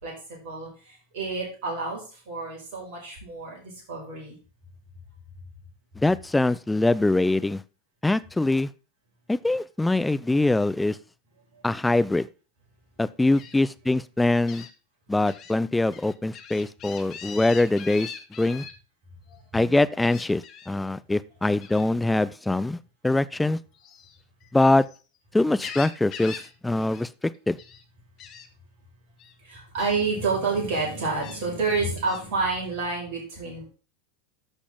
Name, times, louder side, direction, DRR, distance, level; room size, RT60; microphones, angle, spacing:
voice 1, 0.0-2.0 2.3-4.3 19.5-19.8 29.4-33.7, right 4 dB, 55° right, -1 dB, 5.8 m, -29 dB
voice 2, 6.0-7.6 8.0-8.7 9.3-11.0 11.6-12.3 13.0-14.7 15.1-18.1 18.4-18.7 19.5-23.6 24.5-24.8 25.3-26.4 26.6-27.1 27.5-27.6, left 2 dB, 10° left, 15 dB, 0.5 m, -23 dB
Gull seagull, 13.3-13.5 14.5-14.7 15.2-15.5 15.9-18.7 20.0-20.7 21.6-21.9 23.7-25.0 25.4-26.5 26.8-27.0 27.3-27.8 28.2-28.5 29.2-29.3 29.8-30.0 30.7-31.4 32.0-32.2, left 7 dB, 40° left, 1.6 m, -41 dB
13.5 x 6.1 x 3.8 m, 0.35 s
figure-of-eight pair, 85°, 0 cm